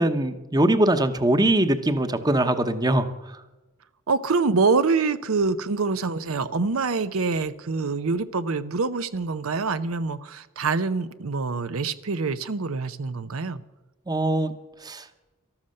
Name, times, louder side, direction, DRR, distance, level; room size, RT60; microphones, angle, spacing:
voice 1, 0.0-3.1 14.1-14.5 14.8-15.0, right 1 dB, 20° right, 10 dB, 0.9 m, -22 dB
voice 2, 4.1-13.6, right 4 dB, 80° right, 13 dB, 0.7 m, -25 dB
13.0 x 13.0 x 6.5 m, 1.1 s
head